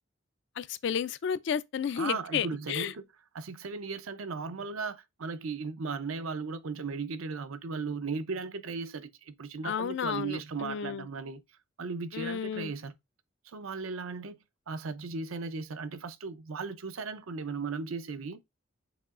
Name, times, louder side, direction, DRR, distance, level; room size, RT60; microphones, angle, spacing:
voice 1, 0.6-2.9 9.6-11.1 12.1-12.7, left 7 dB, 60° left, 0.3 m, -32 dB
voice 2, 2.0-3.0 3.3-11.4 11.8-12.9 13.4-14.4 14.7-18.4, right 4 dB, 85° right, 0.6 m, -36 dB
7.0 x 2.9 x 2.4 m
head